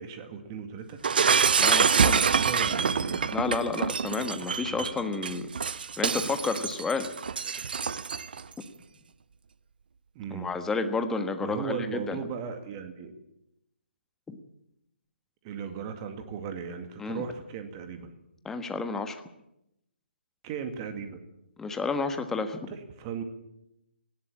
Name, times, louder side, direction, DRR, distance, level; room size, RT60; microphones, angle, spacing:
voice 1, 0.0-1.3 1.8-3.4 4.7-4.9 10.1-10.5 11.4-13.1 15.4-18.1 20.4-21.2 22.7-23.2, right 6 dB, 25° right, 8 dB, 2.2 m, -37 dB
Shatter, 1.0-8.4, right 6 dB, 55° right, 0.9 m, -26 dB
voice 2, 1.6-2.4 3.3-5.5 6.0-7.1 10.3-12.2 14.3-14.4 17.0-17.2 18.4-19.2 21.6-22.6, left 4 dB, 5° left, 8 dB, 1.4 m, -31 dB
18.5 x 16.5 x 8.8 m, 0.84 s
figure-of-eight pair, 140°, 6 cm